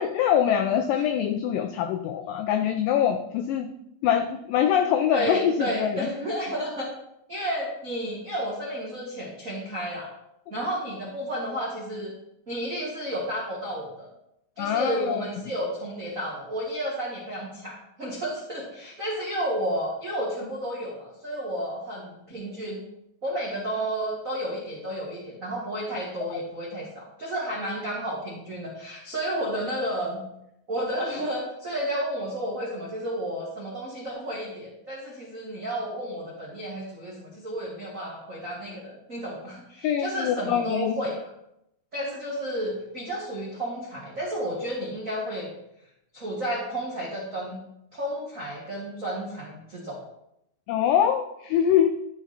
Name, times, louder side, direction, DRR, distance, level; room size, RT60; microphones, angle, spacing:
voice 1, 0.0-3.7 4.0-6.1 14.6-15.2 39.8-41.0 50.7-52.0, left 9 dB, 85° left, 7 dB, 1.9 m, -24 dB
voice 2, 5.1-6.9 7.3-10.1 10.5-12.1 12.5-14.1 14.6-22.8 23.2-30.2 30.7-41.2 41.9-45.5 46.1-47.6 47.9-50.0, equal, 60° right, -4 dB, 0.8 m, -32 dB
11.5 x 5.9 x 4.1 m, 0.81 s
omnidirectional pair, 4.5 m